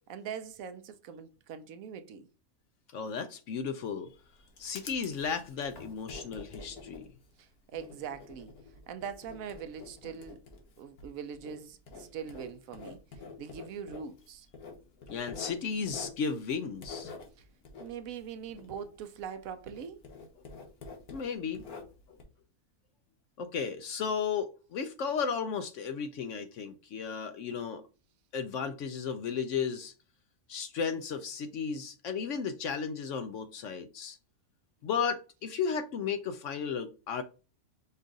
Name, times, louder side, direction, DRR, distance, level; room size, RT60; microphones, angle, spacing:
voice 1, 0.1-2.3 7.4-8.5 8.9-10.4 10.8-13.0 13.4-14.5 17.4-17.5 17.8-20.0, right 7 dB, 70° right, 0.9 m, -42 dB
voice 2, 2.9-4.1 4.6-7.1 15.1-17.1 21.1-21.6 23.4-27.8 28.3-29.9 30.5-34.2 34.8-37.2, left 6 dB, 65° left, 0.8 m, -34 dB
Writing, 4.0-19.4 19.7-22.2, left 4 dB, 85° left, 1.6 m, -48 dB
5.3 x 2.5 x 3.8 m
omnidirectional pair, 1.6 m